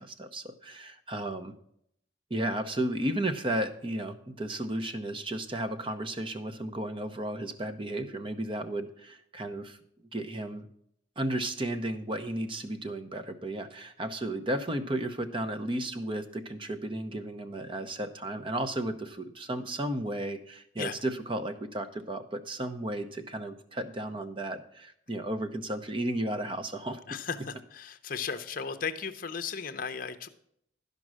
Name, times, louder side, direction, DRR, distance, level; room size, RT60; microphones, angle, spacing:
voice 1, 0.0-1.5 2.3-9.8 10.1-10.7 11.2-27.0, right 1 dB, 25° right, 9 dB, 0.7 m, -34 dB
voice 2, 27.1-30.3, left 6 dB, 45° left, 8 dB, 0.7 m, -35 dB
12.0 x 5.3 x 6.2 m, 0.71 s
head